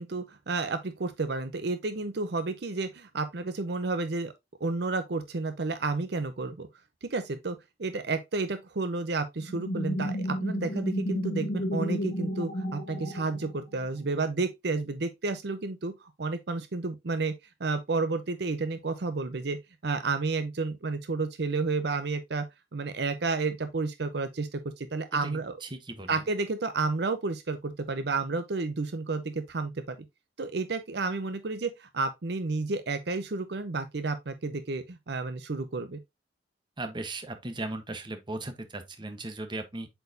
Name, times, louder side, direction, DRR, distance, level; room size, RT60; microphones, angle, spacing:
voice 1, 0.0-4.3 4.6-6.7 7.0-17.3 17.6-19.6 19.8-22.4 22.7-25.6 26.1-30.0 30.4-36.0, right 3 dB, 65° right, 0.7 m, -31 dB
sound 1, 9.5-13.9, equal, 65° left, 1.7 m, -32 dB
voice 2, 25.1-26.2 36.8-39.9, right 2 dB, 25° right, 1.0 m, -37 dB
8.0 x 4.6 x 2.6 m
head